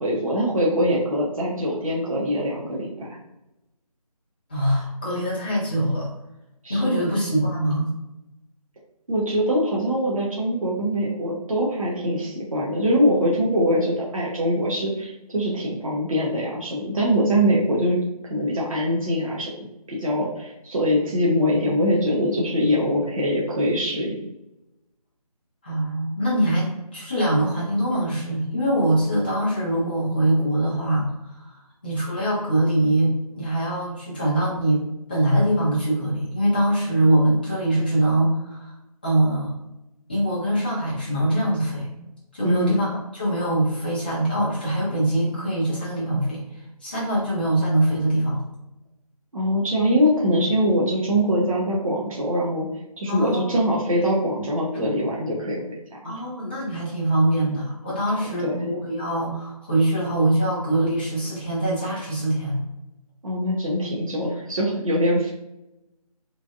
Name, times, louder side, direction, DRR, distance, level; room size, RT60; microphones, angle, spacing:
voice 1, 0.0-3.2 6.6-7.0 9.1-18.0 18.3-24.3 42.4-42.8 49.3-52.7 53.0-55.6 55.9-56.2 58.1-58.6 63.2-65.3, equal, 60° right, -4 dB, 0.8 m, -23 dB
voice 2, 4.5-6.1 6.7-7.9 25.6-31.5 31.8-38.7 39.0-39.5 40.1-41.9 42.3-42.9 43.1-46.5 46.8-48.4 50.3-50.4 53.1-53.6 56.0-62.6, right 1 dB, 15° left, -8 dB, 0.6 m, -23 dB
3.1 x 2.5 x 2.3 m, 0.92 s
figure-of-eight pair, 170°, 20 cm